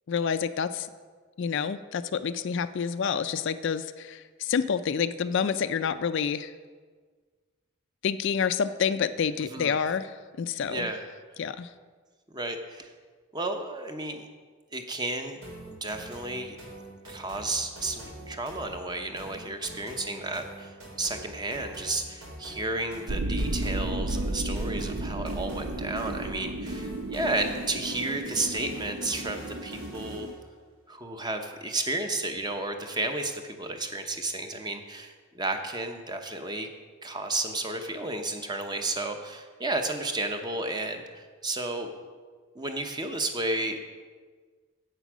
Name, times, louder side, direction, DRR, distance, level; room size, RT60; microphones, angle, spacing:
voice 1, 0.1-0.9 1.4-6.5 8.0-10.9 11.4-11.7, left 6 dB, 60° left, 12 dB, 0.4 m, -28 dB
voice 2, 10.7-11.0 12.3-12.9 13.3-14.2 14.7-15.4 15.8-16.6 17.1-30.3 30.9-36.7 37.0-41.9 42.5-43.8, right 2 dB, 20° right, 5 dB, 0.8 m, -32 dB
sound 1, 15.4-30.4, right 1 dB, 85° right, 3.6 m, -44 dB
sound 2, 23.1-30.3, right 1 dB, 70° right, 0.6 m, -33 dB
8.1 x 8.0 x 6.1 m, 1.5 s
head